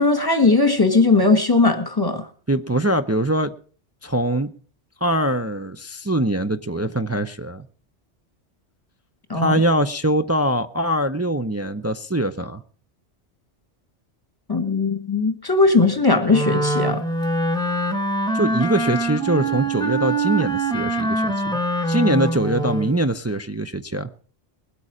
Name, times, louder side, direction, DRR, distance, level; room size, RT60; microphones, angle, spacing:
voice 1, 0.0-2.3 9.3-9.5 14.5-17.0, left 3 dB, 20° left, 1.4 m, -18 dB
voice 2, 2.5-3.5 4.0-4.5 5.0-7.6 9.3-12.6 18.3-21.6 21.9-24.1, right 1 dB, 25° right, 0.3 m, -22 dB
Wind instrument woodwind instrument, 16.3-23.0, right 2 dB, 5° left, 1.2 m, -23 dB
21.0 x 8.4 x 4.9 m
omnidirectional pair, 1.2 m